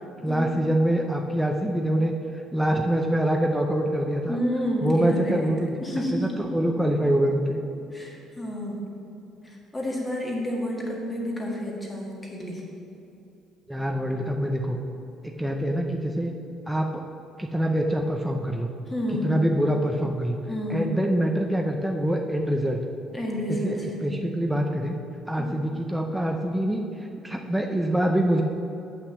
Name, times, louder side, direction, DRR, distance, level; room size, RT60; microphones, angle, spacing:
voice 1, 0.2-4.4 4.8-7.6 13.7-14.8 15.2-16.3 16.7-17.0 17.4-18.7 19.2-20.4 20.7-22.8 23.5-24.9 25.3-28.4, right 1 dB, 5° right, 1 dB, 0.5 m, -25 dB
voice 2, 4.3-5.5 5.8-6.4 7.9-8.9 9.4-12.6 18.9-19.4 20.5-20.9 23.1-24.2 25.4-25.7, equal, 15° left, -2 dB, 1.7 m, -30 dB
8.1 x 6.0 x 7.1 m, 2.7 s
cardioid pair, 155°, 0 cm